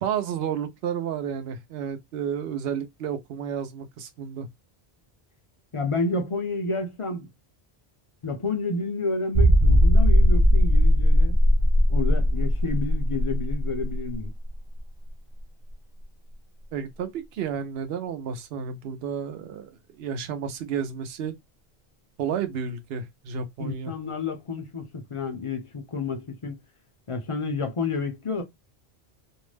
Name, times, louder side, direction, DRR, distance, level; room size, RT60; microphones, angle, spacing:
voice 1, 0.0-4.5 16.7-19.7 20.0-21.3 22.2-23.9, right 7 dB, 75° right, 0.8 m, -31 dB
voice 2, 5.7-7.3 8.2-11.4 11.9-14.3 23.6-26.6 27.1-28.4, left 3 dB, 40° left, 0.5 m, -30 dB
sound 1, 9.3-14.8 15.1-15.2 15.7-15.8, equal, 50° right, 0.3 m, -19 dB
2.6 x 2.1 x 3.2 m
omnidirectional pair, 1.0 m